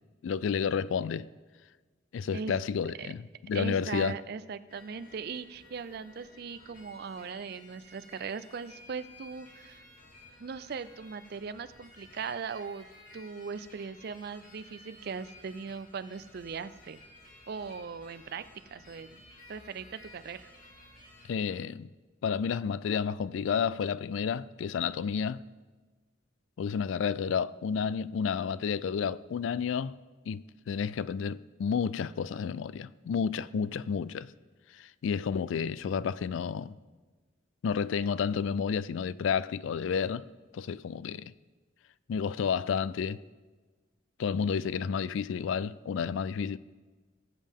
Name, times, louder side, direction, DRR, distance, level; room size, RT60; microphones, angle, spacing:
voice 1, 0.2-1.3 2.1-4.2 21.3-21.9 22.2-25.4 26.6-30.0 30.3-34.3 34.7-36.7 37.6-40.2 40.5-41.3 42.1-43.2 44.2-46.6, left 6 dB, 75° left, 0.3 m, -31 dB
voice 2, 3.5-9.8 10.4-12.9 13.1-17.0 17.5-18.4 18.7-19.2 19.5-20.5, right 5 dB, 55° right, 0.4 m, -39 dB
sound 1, 4.7-21.2, left 1 dB, 45° left, 2.4 m, -55 dB
19.0 x 7.4 x 3.5 m
head